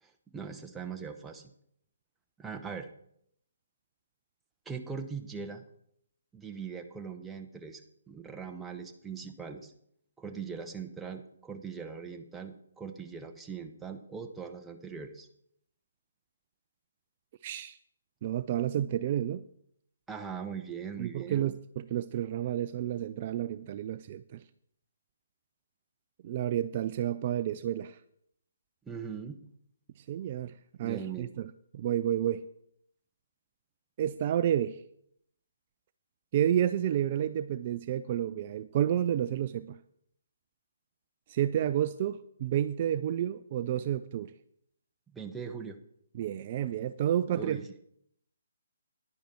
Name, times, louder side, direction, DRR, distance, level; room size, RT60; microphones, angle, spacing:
voice 1, 0.0-1.4 2.4-2.9 4.7-5.6 6.3-7.8 8.1-9.7 10.2-15.3 20.1-21.4 28.9-29.4 30.8-31.3 45.1-45.8 47.3-47.7, right 6 dB, 10° right, 4 dB, 0.9 m, -40 dB
voice 2, 17.4-17.8 18.2-19.4 21.0-24.4 26.2-28.0 30.0-32.4 34.0-34.8 36.3-39.8 41.3-44.3 46.1-47.6, right 11 dB, 40° right, 13 dB, 0.4 m, -30 dB
10.5 x 10.0 x 4.3 m, 0.71 s
figure-of-eight pair, 135°, 0 cm